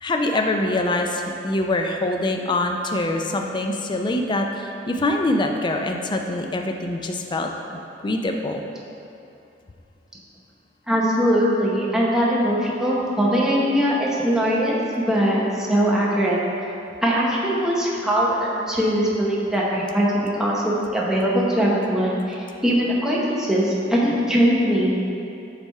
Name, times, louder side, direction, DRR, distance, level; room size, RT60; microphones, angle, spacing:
voice 1, 0.0-7.5 8.0-8.6, left 2 dB, 25° left, 3 dB, 0.4 m, -24 dB
voice 2, 10.9-16.4 17.0-22.4 22.6-25.0, equal, 5° right, -5 dB, 0.8 m, -21 dB
7.1 x 3.3 x 4.5 m, 2.7 s
head